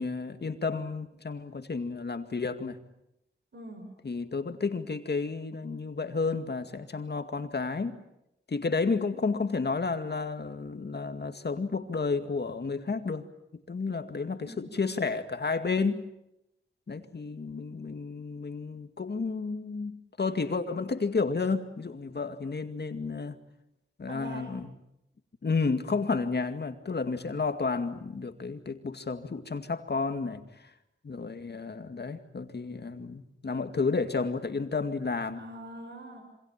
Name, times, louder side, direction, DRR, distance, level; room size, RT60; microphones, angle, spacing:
voice 1, 0.0-2.8 4.0-8.0 8.5-13.3 13.5-16.0 16.9-23.3 24.0-24.7 25.4-30.7 31.0-35.4, left 4 dB, 60° left, 2.2 m, -31 dB
voice 2, 3.5-3.9 14.4-14.9 24.1-24.5 35.4-36.2, right 1 dB, 65° right, 6.4 m, -43 dB
27.5 x 26.0 x 7.4 m
wide cardioid pair, 90°, 20 cm